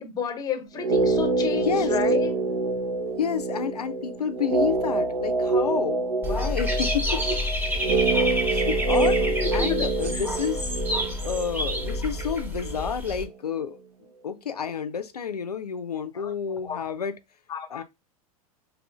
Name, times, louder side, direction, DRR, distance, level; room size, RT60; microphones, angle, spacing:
voice 1, 0.0-2.3 9.2-10.2 16.1-16.8 17.5-17.8, left 7 dB, 20° left, 1.0 m, -32 dB
sound 1, 0.8-12.9 13.1-13.2, right 3 dB, 65° right, 0.9 m, -26 dB
voice 2, 1.6-2.0 3.2-7.4 8.5-9.2 9.5-10.7 11.2-13.8 14.2-17.2 17.7-17.8, left 7 dB, 85° left, 0.4 m, -30 dB
Dog / Bird, 6.2-13.2, left 1 dB, 10° right, 1.0 m, -28 dB
4.8 x 3.4 x 2.2 m
figure-of-eight pair, 90°, 19 cm